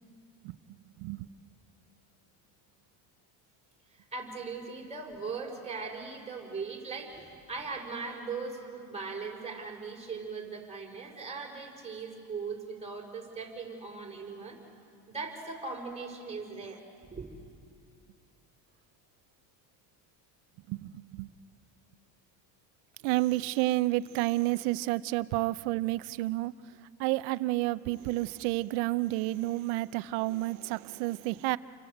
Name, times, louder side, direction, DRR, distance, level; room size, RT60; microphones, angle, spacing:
voice 1, 4.1-14.6 15.1-16.8 17.1-17.4, right 4 dB, 15° right, -1 dB, 5.2 m, -39 dB
voice 2, 20.7-21.3 23.0-26.5 27.0-31.6, right 18 dB, 85° right, 15 dB, 0.9 m, -30 dB
30.0 x 24.5 x 8.0 m, 2.4 s
cardioid pair, 135°, 49 cm